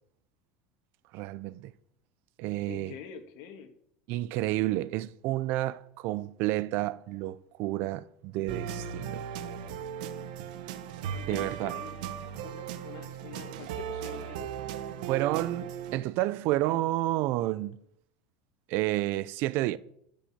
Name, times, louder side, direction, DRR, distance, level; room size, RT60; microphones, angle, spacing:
voice 1, 1.1-1.7 2.4-2.9 4.1-9.2 11.3-11.7 15.1-17.8 18.7-19.8, right 16 dB, 55° right, 0.6 m, -30 dB
voice 2, 2.7-3.7 11.1-11.9 12.4-14.6, left 8 dB, 65° left, 1.8 m, -45 dB
sound 1, 8.5-16.0, right 8 dB, 80° right, 1.2 m, -37 dB
13.5 x 5.5 x 8.7 m
supercardioid pair, 140°, 4 cm